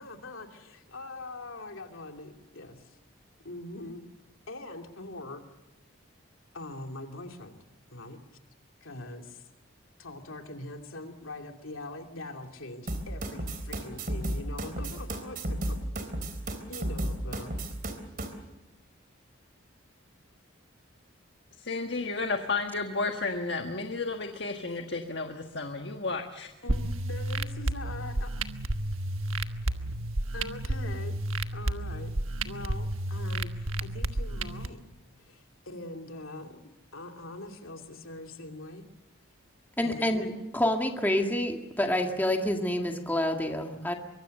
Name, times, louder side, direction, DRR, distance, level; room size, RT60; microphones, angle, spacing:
voice 1, 0.0-0.5 0.9-3.0 3.4-4.1 4.5-5.4 6.5-7.6 7.9-8.2 8.8-9.4 10.0-15.8 16.7-17.5 26.6-28.4 30.3-31.2 31.5-32.1 32.4-34.8 35.2-36.6 36.9-38.9 39.8-40.3, left 2 dB, 85° left, 4 dB, 2.8 m, -42 dB
sound 1, 12.9-18.3, right 1 dB, 45° right, 3.5 m, -33 dB
voice 2, 21.6-26.5, left 3 dB, 55° left, 5 dB, 1.6 m, -32 dB
sound 2, 26.7-34.7, right 1 dB, 85° right, 1.3 m, -32 dB
voice 3, 39.8-40.2 40.5-43.9, left 1 dB, 10° left, 3 dB, 1.9 m, -27 dB
24.0 x 23.5 x 6.7 m, 1.0 s
head